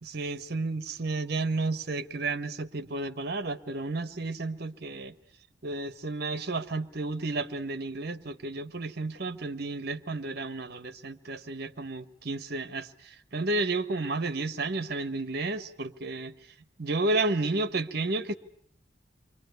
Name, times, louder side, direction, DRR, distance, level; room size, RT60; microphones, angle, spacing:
voice 1, 0.0-5.1 5.6-16.3 16.8-18.4, right 2 dB, 55° right, 1.2 m, -32 dB
28.5 x 24.0 x 8.1 m
head